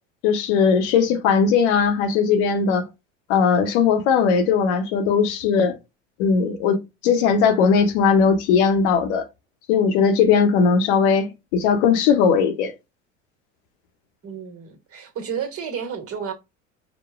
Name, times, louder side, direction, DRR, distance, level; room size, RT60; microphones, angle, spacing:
voice 1, 0.2-2.9 3.3-5.8 6.2-9.2 9.7-12.7, left 6 dB, 65° left, 1.0 m, -19 dB
voice 2, 14.2-16.3, right 7 dB, 40° right, 1.4 m, -31 dB
5.0 x 2.2 x 3.5 m
hypercardioid pair, 80°, 37 cm